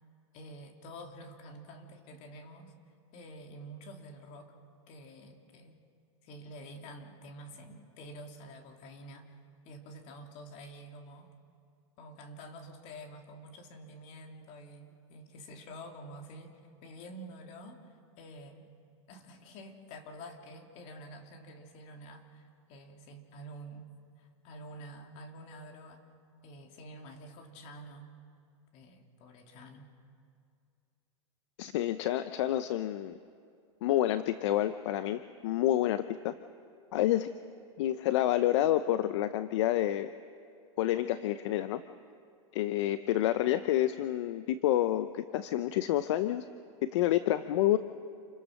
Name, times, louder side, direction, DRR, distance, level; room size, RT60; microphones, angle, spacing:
voice 1, 0.3-2.7 3.1-4.5 4.9-5.8 6.2-9.3 9.6-11.3 12.0-18.7 19.1-23.9 24.2-26.0 26.4-28.1 28.7-29.9, equal, 45° left, 3 dB, 2.9 m, -48 dB
voice 2, 31.6-33.1 33.8-36.3 36.9-37.3 37.8-40.1 40.8-41.8 42.5-46.4 46.8-47.8, left 13 dB, 65° left, 12 dB, 0.8 m, -28 dB
28.5 x 22.5 x 6.6 m, 2.4 s
supercardioid pair, 130°, 16 cm